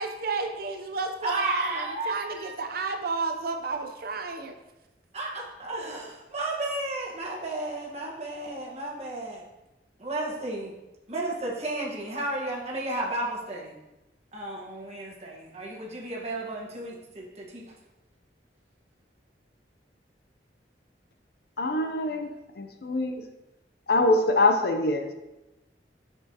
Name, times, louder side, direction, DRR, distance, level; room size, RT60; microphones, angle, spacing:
voice 1, 0.0-4.5, right 4 dB, 55° right, 5 dB, 0.6 m, -31 dB
voice 2, 1.2-2.6 5.1-9.4 10.0-10.7 11.1-13.7 14.3-17.7, right 2 dB, 35° right, -3 dB, 1.3 m, -33 dB
voice 3, 21.6-22.3 22.6-23.1 23.9-25.1, left 2 dB, 60° left, 6 dB, 0.6 m, -24 dB
6.6 x 6.1 x 2.9 m, 1.0 s
head